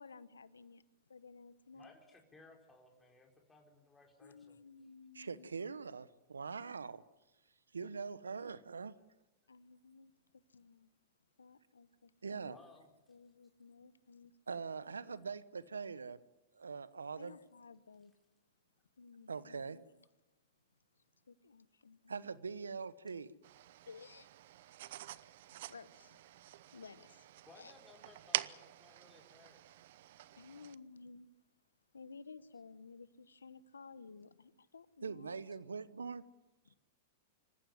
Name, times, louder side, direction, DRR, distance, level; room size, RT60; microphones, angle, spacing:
voice 1, 0.0-1.9 4.2-5.5 9.5-10.9 11.4-12.6 13.1-14.3 15.1-15.2 17.2-18.1 19.0-19.9 21.0-22.1 23.9-24.3 24.8-25.0 25.7-26.2 26.7-27.3 27.5-27.7 30.4-31.3 31.9-35.3 36.6-36.8, left 4 dB, 90° left, 1.1 m, -55 dB
voice 2, 1.7-4.6 12.4-12.9 24.9-25.0 27.4-29.6, left 2 dB, 10° left, 4.5 m, -61 dB
voice 3, 5.1-7.0 7.7-8.9 12.2-12.6 14.5-16.2 16.5-17.3 19.3-19.8 22.1-23.3 35.0-36.2, right 5 dB, 90° right, 1.0 m, -43 dB
sound 1, 23.4-30.7, right 14 dB, 65° right, 0.8 m, -46 dB
26.5 x 15.0 x 9.5 m
hypercardioid pair, 105°, 0 cm